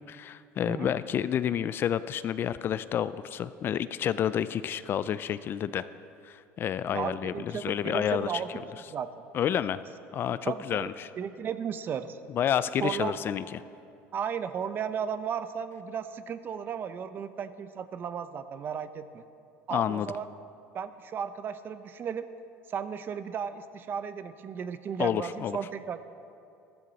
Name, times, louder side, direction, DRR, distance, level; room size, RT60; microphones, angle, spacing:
voice 1, 0.1-5.9 6.2-8.3 9.3-9.8 10.1-11.1 12.3-13.6 19.7-20.1 25.0-25.6, left 9 dB, 40° left, 15 dB, 0.4 m, -29 dB
voice 2, 6.9-8.5 8.9-9.2 10.2-10.9 11.2-12.2 12.8-13.1 14.1-19.2 19.7-20.3 20.7-22.3 22.7-26.0, right 7 dB, 40° right, 12 dB, 0.7 m, -35 dB
14.5 x 13.5 x 4.1 m, 2.5 s
supercardioid pair, 110°, 6 cm